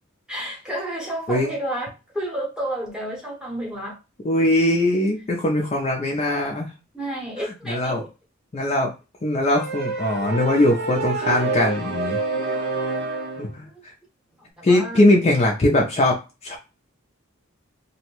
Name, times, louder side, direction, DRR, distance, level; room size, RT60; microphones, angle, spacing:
voice 1, 0.3-4.0 6.9-8.0 13.7-13.8 14.4-15.0, right 1 dB, 5° right, 0.8 m, -31 dB
voice 2, 4.2-6.7 7.4-8.1 8.5-8.9 9.2-12.2 13.4-13.9 14.6-16.6, left 1 dB, 30° left, 0.4 m, -21 dB
sound 1, 9.5-13.5, right 3 dB, 55° right, 0.6 m, -27 dB
2.7 x 2.1 x 2.9 m
head